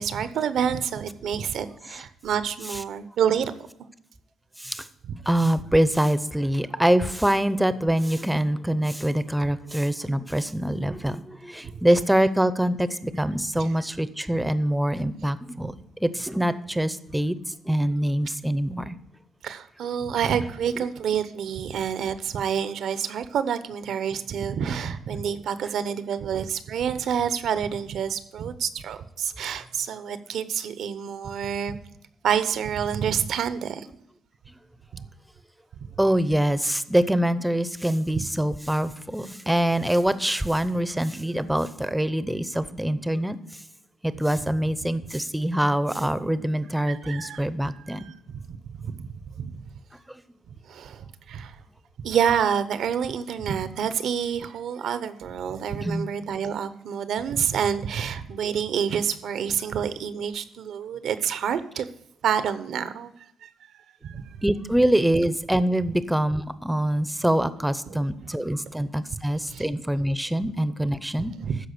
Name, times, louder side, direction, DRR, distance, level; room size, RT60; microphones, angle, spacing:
voice 1, 0.0-3.7 5.1-5.2 19.4-31.8 32.2-33.9 34.9-35.0 38.2-38.3 46.9-49.1 49.3-49.5 50.7-51.6 52.0-61.9 62.2-63.1 63.4-63.5 64.0-64.4 69.5-69.7 71.2-71.6, right 8 dB, 70° right, 12 dB, 0.8 m, -28 dB
voice 2, 5.3-15.7 16.0-17.4 17.6-19.0 36.0-43.4 44.0-48.0 50.1-50.2 55.8-56.1 64.4-71.3, right 1 dB, 5° right, 14 dB, 0.7 m, -24 dB
13.0 x 4.9 x 6.7 m, 0.78 s
cardioid pair, 90°, 0 cm